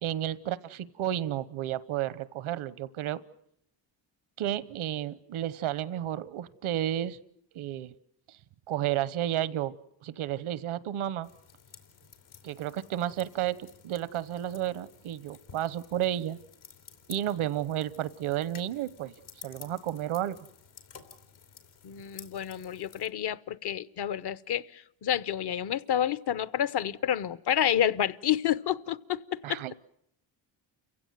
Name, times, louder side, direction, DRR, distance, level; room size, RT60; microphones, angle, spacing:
voice 1, 0.0-3.2 4.4-7.2 7.5-7.9 8.7-9.7 10.0-11.3 12.4-13.6 13.8-16.4 17.1-19.1 19.4-20.4 29.4-29.7, right 12 dB, 80° right, 1.1 m, -32 dB
sound 1, 11.2-23.1, left 7 dB, 85° left, 3.6 m, -53 dB
voice 2, 21.8-29.6, left 10 dB, 55° left, 0.9 m, -29 dB
29.0 x 16.0 x 9.3 m
cardioid pair, 95°, 48 cm